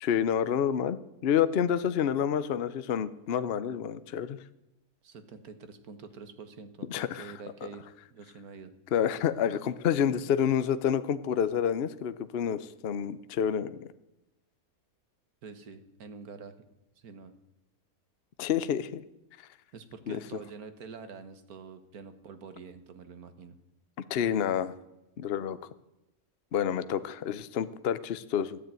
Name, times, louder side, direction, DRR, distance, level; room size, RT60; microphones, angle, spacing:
voice 1, 0.0-4.4 6.9-7.3 8.9-13.9 18.4-19.0 20.1-20.2 24.1-24.7 25.2-25.6 26.5-28.6, left 8 dB, 55° left, 13 dB, 0.8 m, -28 dB
voice 2, 5.0-8.7 15.4-16.5 17.0-17.3 19.7-23.6, right 5 dB, 85° right, 9 dB, 1.8 m, -46 dB
15.0 x 10.0 x 8.9 m, 0.95 s
omnidirectional pair, 1.5 m